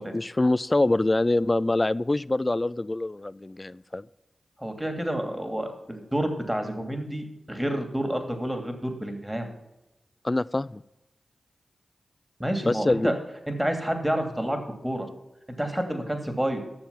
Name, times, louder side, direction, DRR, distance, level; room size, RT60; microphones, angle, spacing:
voice 1, 0.1-4.1 10.2-10.8 12.7-13.1, left 2 dB, 30° left, 20 dB, 0.4 m, -25 dB
voice 2, 4.6-9.5 12.4-13.1 13.5-15.1 15.6-16.6, right 1 dB, 10° right, 6 dB, 2.8 m, -29 dB
12.5 x 7.1 x 7.1 m, 0.91 s
cardioid pair, 45°, 0 cm